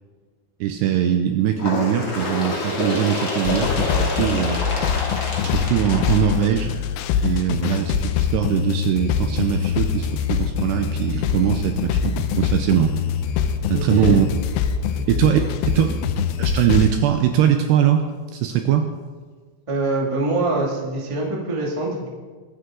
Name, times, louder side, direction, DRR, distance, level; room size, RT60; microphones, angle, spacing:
voice 1, 0.6-4.6 5.4-6.8 7.2-13.0 13.7-14.3 15.1-15.4 15.7-16.0 16.4-18.1 18.3-18.9, right 10 dB, 80° right, 6 dB, 2.4 m, -21 dB
Bird, 1.6-7.0 7.9-8.0 8.4-8.5 9.4-9.5 10.4-10.5 11.3-11.4, left 2 dB, 35° left, 2.4 m, -27 dB
sound 1, 3.5-16.9, left 8 dB, 85° left, 3.3 m, -23 dB
sound 2, 9.2-14.5, equal, 5° right, 1.1 m, -38 dB
voice 2, 13.7-14.2 14.9-15.5 19.7-22.1, right 2 dB, 55° right, -3 dB, 0.3 m, -25 dB
23.0 x 9.5 x 3.9 m, 1.5 s
omnidirectional pair, 5.5 m